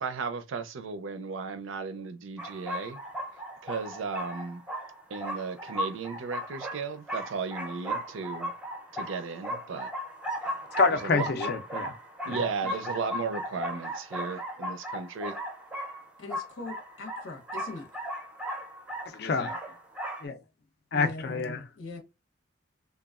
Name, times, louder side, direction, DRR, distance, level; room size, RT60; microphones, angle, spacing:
voice 1, 0.0-3.0 3.6-4.6 5.1-8.5 8.9-9.9 10.9-11.3 12.3-15.4, right 4 dB, 80° right, 0.4 m, -35 dB
sound 1, 2.4-20.3, equal, 5° right, 0.5 m, -36 dB
voice 2, 10.8-11.9 12.3-12.4 19.1-19.6 20.2-20.4 20.9-21.6, left 4 dB, 50° left, 0.4 m, -27 dB
voice 3, 16.2-17.9 20.9-22.0, left 3 dB, 85° left, 0.9 m, -41 dB
3.0 x 2.2 x 2.3 m
head